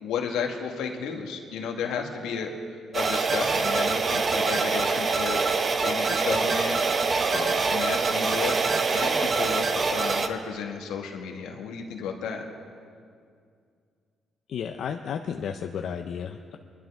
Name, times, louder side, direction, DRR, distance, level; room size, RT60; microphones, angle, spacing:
voice 1, 0.0-2.5 2.9-5.4 5.8-6.8 7.3-8.6 8.9-12.4, left 6 dB, 90° left, 2 dB, 1.5 m, -33 dB
sound 1, 2.9-10.3, right 4 dB, 40° right, 0.8 m, -25 dB
voice 2, 14.5-16.6, left 7 dB, 65° left, 5 dB, 0.5 m, -33 dB
22.5 x 12.0 x 3.5 m, 2.2 s
cardioid pair, 90°, 0 cm